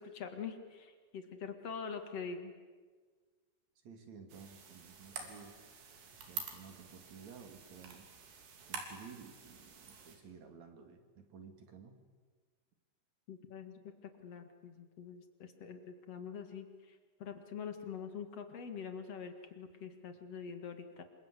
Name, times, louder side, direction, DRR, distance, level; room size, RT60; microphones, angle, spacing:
voice 1, 0.0-2.5 13.3-21.0, left 6 dB, 50° left, 7 dB, 2.1 m, -45 dB
voice 2, 3.8-5.6 6.1-8.1 8.7-12.0, right 6 dB, 45° right, 6 dB, 3.1 m, -54 dB
sound 1, 4.3-10.2, right 6 dB, 70° right, 5.0 m, -48 dB
27.5 x 25.5 x 8.3 m, 1.5 s
omnidirectional pair, 5.2 m